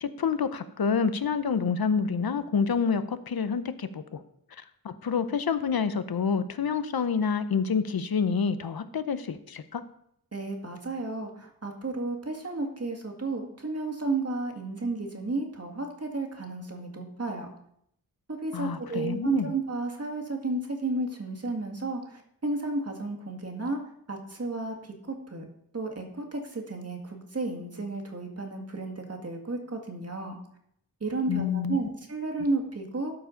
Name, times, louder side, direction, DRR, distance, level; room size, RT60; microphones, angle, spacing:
voice 1, 0.0-4.2 4.6-9.8 18.5-19.5 31.3-31.8, left 6 dB, 70° left, 11 dB, 0.7 m, -28 dB
voice 2, 10.3-17.5 18.3-23.8 24.1-25.5 25.7-30.4 31.0-33.1, right 3 dB, 40° right, 3 dB, 1.9 m, -32 dB
12.5 x 4.8 x 5.1 m, 0.72 s
wide cardioid pair, 75°, 37 cm